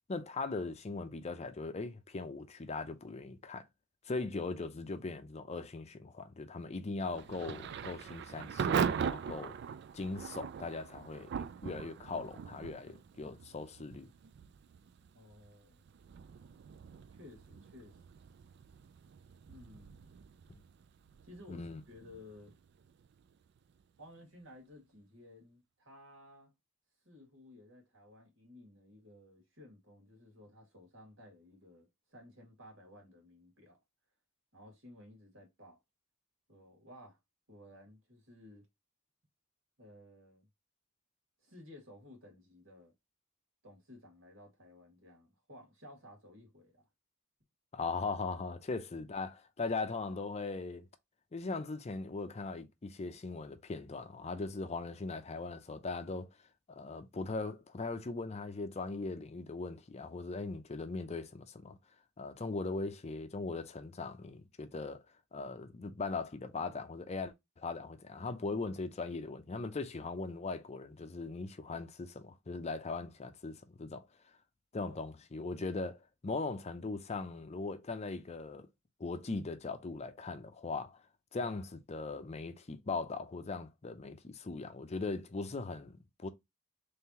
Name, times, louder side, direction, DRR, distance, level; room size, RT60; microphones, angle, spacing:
voice 1, 0.1-3.6 4.1-9.6 9.9-14.1 21.5-21.8 47.7-50.9 51.3-56.3 56.7-61.8 62.2-65.0 65.3-74.0 74.7-78.7 79.0-81.0 81.3-86.3, left 3 dB, 35° left, 0.5 m, -39 dB
Thunder / Rain, 7.1-23.8, right 7 dB, 55° right, 0.3 m, -41 dB
voice 2, 15.1-15.9 17.1-18.0 19.5-20.2 21.2-22.5 24.0-26.5 27.0-33.8 34.5-35.8 36.5-37.2 37.5-38.7 39.8-40.5 41.4-42.9 43.6-46.9 74.8-75.2, left 1 dB, 75° right, 2.1 m, -56 dB
3.7 x 3.4 x 2.8 m
head